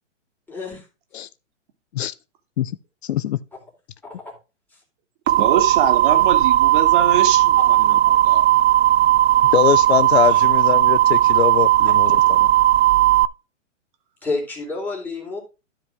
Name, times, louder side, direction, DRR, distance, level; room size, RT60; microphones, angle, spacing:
voice 1, 0.5-0.9 3.5-3.6 4.0-4.3 7.5-7.8 10.2-10.5 14.2-15.4, left 3 dB, 5° left, 3.4 m, -30 dB
voice 2, 3.1-3.4 9.5-12.4, left 11 dB, 55° left, 0.7 m, -22 dB
voice 3, 5.3-8.4, right 9 dB, 45° right, 2.3 m, -24 dB
sound 1, 5.3-13.2, right 13 dB, 60° right, 0.6 m, -16 dB
13.0 x 4.8 x 3.5 m
hypercardioid pair, 150°, 37 cm